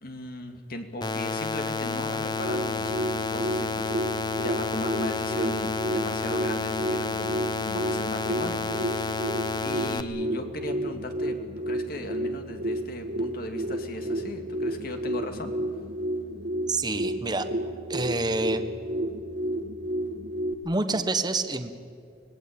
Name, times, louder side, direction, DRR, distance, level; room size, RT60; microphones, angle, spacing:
voice 1, 0.0-4.0 4.3-9.3 9.6-11.4 11.7-15.5, left 1 dB, 55° left, 5 dB, 2.4 m, -37 dB
sound 1, 1.0-10.0, left 4 dB, 25° left, 0.9 m, -30 dB
sound 2, 2.2-20.5, right 1 dB, 75° right, 1.9 m, -31 dB
voice 2, 16.7-17.5 17.9-18.6 20.6-21.8, right 2 dB, 25° right, 8 dB, 1.3 m, -27 dB
25.0 x 19.5 x 8.8 m, 2.4 s
head